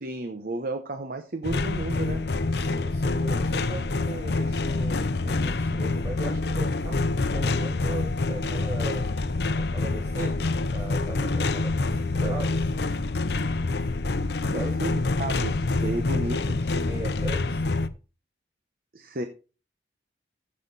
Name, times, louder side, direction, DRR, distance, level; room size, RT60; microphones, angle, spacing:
voice 1, 0.0-2.3 14.4-16.6 18.9-19.3, right 2 dB, 50° right, 8 dB, 0.9 m, -33 dB
sound 1, 1.4-17.9, left 3 dB, 60° left, 0.7 m, -26 dB
voice 2, 2.5-9.0 9.6-12.7 14.5-14.7 16.3-17.7, right 2 dB, 20° right, -3 dB, 2.7 m, -38 dB
14.5 x 6.5 x 4.0 m, 0.35 s
head